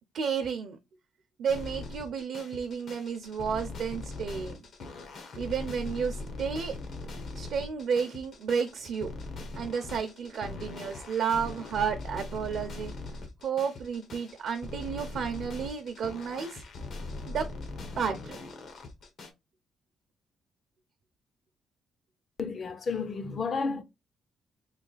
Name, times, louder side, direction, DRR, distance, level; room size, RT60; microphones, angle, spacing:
voice 1, 0.1-0.8 1.4-4.6 5.3-6.7 7.3-9.1 9.5-12.9 13.4-16.6 17.3-17.5 18.0-18.4, right 6 dB, 70° right, 0.5 m, -32 dB
sound 1, 1.5-19.3, left 3 dB, 65° left, 0.9 m, -41 dB
voice 2, 22.4-23.8, left 4 dB, 45° left, 0.5 m, -31 dB
3.2 x 2.3 x 3.9 m
cardioid pair, 90°, 0 cm